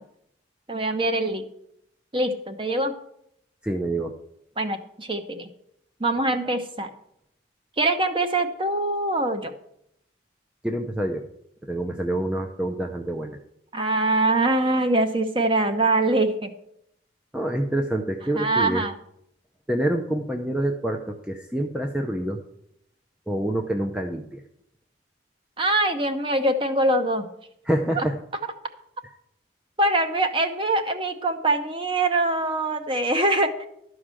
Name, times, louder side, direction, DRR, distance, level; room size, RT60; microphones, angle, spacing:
voice 1, 0.7-1.4 2.1-2.9 4.6-5.5 6.0-6.9 7.8-9.5 13.7-16.5 18.4-18.9 25.6-27.3 28.0-28.1 29.8-33.7, right 2 dB, 25° right, 7 dB, 0.9 m, -23 dB
voice 2, 3.6-4.1 10.6-11.2 11.6-13.4 17.3-18.8 19.7-22.4 23.3-24.4 27.6-28.2, right 1 dB, 5° right, 2 dB, 0.5 m, -27 dB
12.5 x 4.9 x 7.6 m, 0.75 s
head